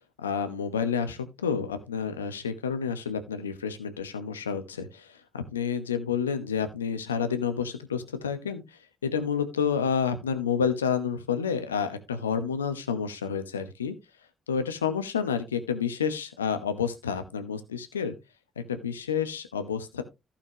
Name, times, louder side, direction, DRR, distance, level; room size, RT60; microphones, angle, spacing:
voice 1, 0.2-13.9 14.5-18.1 18.7-20.0, left 7 dB, 90° left, 1.0 m, -29 dB
14.5 x 5.7 x 3.0 m
hypercardioid pair, 45°, 0 cm